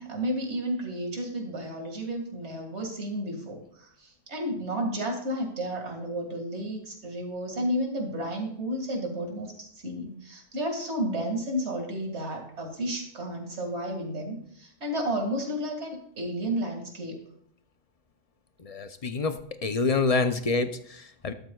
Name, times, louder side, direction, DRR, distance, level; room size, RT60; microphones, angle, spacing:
voice 1, 0.0-9.5 9.8-17.2, equal, 55° right, 2 dB, 2.5 m, -32 dB
voice 2, 18.6-21.3, left 4 dB, 40° left, 9 dB, 0.6 m, -27 dB
13.5 x 12.0 x 2.4 m, 0.65 s
omnidirectional pair, 1.4 m